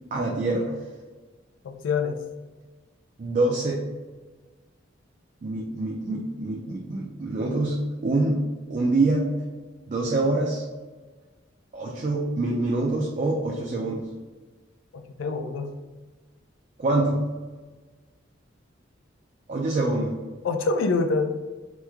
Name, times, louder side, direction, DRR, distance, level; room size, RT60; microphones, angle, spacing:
voice 1, 0.1-0.8 3.2-3.8 5.4-7.8 8.0-8.4 8.7-9.3 9.9-10.6 11.7-14.0 16.8-17.2 19.5-20.2, right 2 dB, 40° right, -1 dB, 0.4 m, -25 dB
voice 2, 1.6-2.2 14.9-15.7 20.4-21.3, left 4 dB, 85° left, 6 dB, 0.4 m, -26 dB
3.0 x 2.1 x 3.4 m, 1.3 s
head